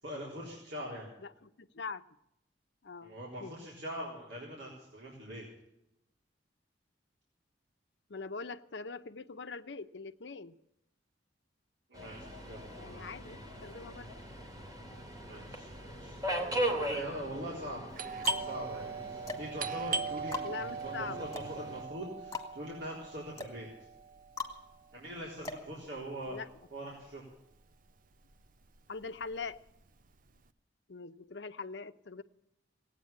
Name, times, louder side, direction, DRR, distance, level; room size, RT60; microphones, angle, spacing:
voice 1, 0.0-1.1 3.0-5.4 11.9-13.2 15.2-15.7 16.0-17.9 18.4-20.5 20.8-23.7 24.9-26.4 26.7-27.2, equal, 80° right, -4 dB, 4.0 m, -43 dB
voice 2, 1.2-2.0 2.8-3.5 8.1-10.6 12.8-14.1 20.4-21.3 26.3-26.5 28.9-29.6 30.9-32.2, left 4 dB, 70° left, 10 dB, 0.8 m, -42 dB
Subway metro underground, 11.9-21.8, right 1 dB, 20° right, 2.6 m, -40 dB
sound 1, 16.4-17.0 17.7-26.4, left 4 dB, 20° left, 1.9 m, -43 dB
Doorbell, 17.9-27.3 27.6-27.7 28.3-28.7 29.0-30.4, right 5 dB, 50° right, 0.7 m, -40 dB
18.0 x 9.1 x 8.6 m, 0.82 s
head